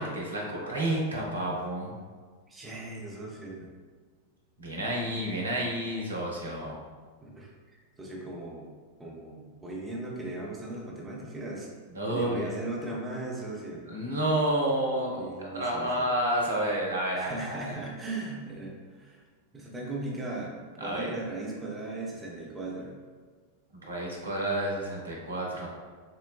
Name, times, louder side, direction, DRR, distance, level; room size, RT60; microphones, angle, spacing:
voice 1, 0.0-1.9 4.6-6.8 11.9-12.5 13.9-17.8 20.8-21.1 23.9-25.7, right 1 dB, 75° right, -2 dB, 0.6 m, -30 dB
voice 2, 2.5-3.7 7.2-8.7 9.0-11.7 12.1-13.8 15.1-16.1 17.2-19.2 19.5-20.5 20.8-23.0, right 2 dB, 15° right, -3 dB, 0.6 m, -38 dB
3.8 x 2.1 x 2.3 m, 1.5 s
figure-of-eight pair, 90°, 0 cm